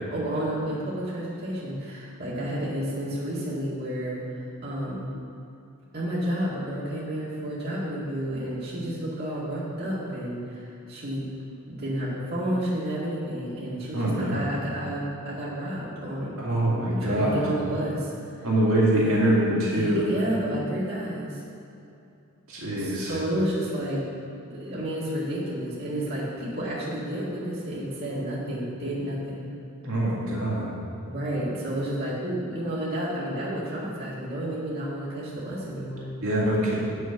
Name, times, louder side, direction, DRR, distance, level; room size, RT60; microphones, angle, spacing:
voice 1, 0.1-4.2 4.6-5.1 5.9-11.3 11.7-16.3 16.9-18.1 18.4-18.5 19.7-21.4 22.7-24.0 24.5-29.5 31.0-36.1, right 1 dB, 45° right, -8 dB, 2.0 m, -31 dB
voice 2, 13.9-14.4 16.4-17.4 18.4-20.1 22.5-23.1 29.8-30.7 36.2-36.8, right 1 dB, 70° right, -6 dB, 2.2 m, -24 dB
7.9 x 6.3 x 5.8 m, 2.7 s
head